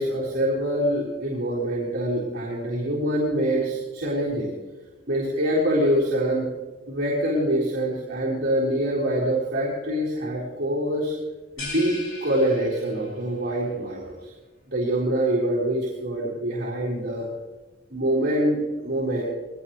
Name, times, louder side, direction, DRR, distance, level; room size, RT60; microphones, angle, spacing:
voice 1, 0.0-4.5 5.1-6.5 6.9-11.1 11.6-14.1 14.7-17.3 17.9-19.2, right 1 dB, 50° right, -7 dB, 4.1 m, -25 dB
sound 1, 11.6-13.3, left 3 dB, 80° left, 4.9 m, -38 dB
21.5 x 18.0 x 3.2 m, 1.2 s
head